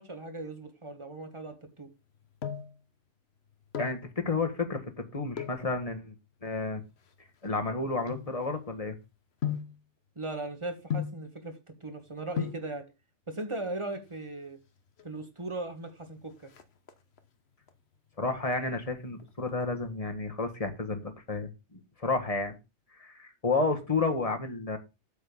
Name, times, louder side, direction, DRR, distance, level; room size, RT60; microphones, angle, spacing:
voice 1, 0.0-1.9 10.1-12.9 13.3-14.6 15.0-16.5, right 2 dB, 25° right, 1.6 m, -38 dB
sound 1, 2.0-2.8 3.5-4.1 5.3-5.7 6.4-8.8 9.4-9.8 10.9-11.3 12.1-12.2 12.4-12.7 13.8-14.4 14.7-14.8 15.0-15.1 15.5-15.9 16.2-17.3 17.7-18.1 18.5-19.6 19.9-20.0, left 8 dB, 65° left, 1.2 m, -37 dB
voice 2, 3.8-6.1 6.4-6.8 7.4-9.0 18.2-22.5 23.0-24.8, left 3 dB, 30° left, 1.6 m, -31 dB
8.3 x 4.3 x 7.1 m
omnidirectional pair, 1.2 m